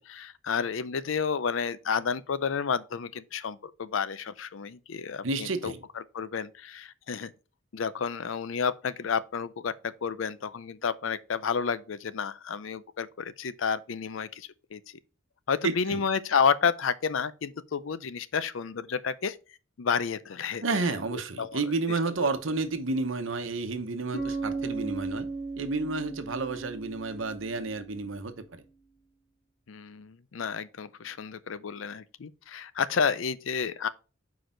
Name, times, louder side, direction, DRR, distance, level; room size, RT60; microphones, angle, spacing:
voice 1, 0.0-5.7 6.1-7.3 7.7-14.8 15.5-19.4 19.8-20.6 21.1-21.6 29.7-33.9, left 6 dB, 70° left, 0.5 m, -30 dB
voice 2, 5.2-5.8 15.6-16.0 20.6-25.3 25.6-28.6, right 3 dB, 70° right, 0.9 m, -31 dB
Bass guitar, 24.1-28.0, right 3 dB, 45° left, 2.1 m, -36 dB
6.2 x 4.8 x 3.9 m
head